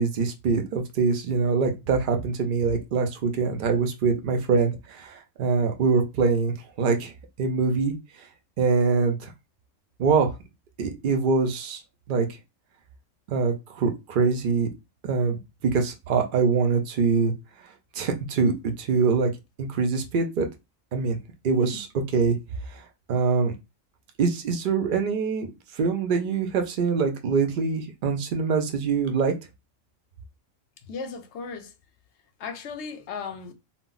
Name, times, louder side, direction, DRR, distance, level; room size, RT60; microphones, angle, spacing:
voice 1, 0.0-7.1 7.4-7.9 8.6-9.3 10.0-10.3 10.8-11.8 12.1-12.3 13.3-14.7 15.0-17.3 17.9-19.3 19.6-20.5 20.9-21.2 21.4-21.9 22.1-22.4 22.7-22.8 23.1-23.5 24.2-25.5 25.7-29.3, right 5 dB, 60° right, 0.5 m, -24 dB
voice 2, 30.9-31.7 32.4-33.5, left 5 dB, 65° left, 0.8 m, -36 dB
2.2 x 2.0 x 3.8 m
omnidirectional pair, 1.4 m